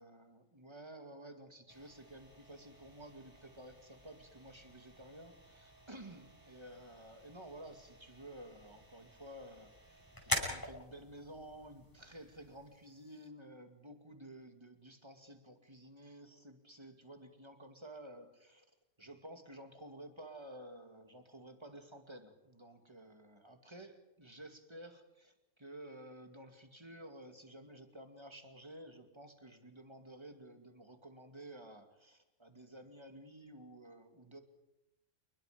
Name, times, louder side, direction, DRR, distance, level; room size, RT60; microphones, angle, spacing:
voice 1, 0.0-18.7 19.0-34.4, right 1 dB, 20° right, 6 dB, 2.3 m, -53 dB
sound 1, 1.7-13.3, left 1 dB, 15° left, 5.6 m, -46 dB
28.0 x 22.0 x 5.1 m, 0.92 s
omnidirectional pair, 1.5 m